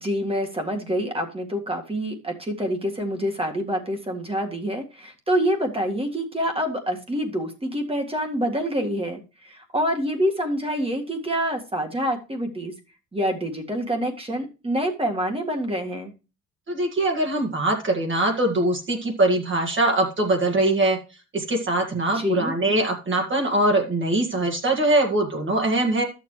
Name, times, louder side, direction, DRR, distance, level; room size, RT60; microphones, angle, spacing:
voice 1, 0.0-12.7 13.1-16.1 22.1-22.5, equal, 20° right, 4 dB, 1.8 m, -26 dB
voice 2, 16.7-21.0 21.3-26.0, right 2 dB, 40° right, 1 dB, 1.9 m, -22 dB
11.5 x 7.0 x 3.2 m, 0.30 s
cardioid pair, 90°, 30 cm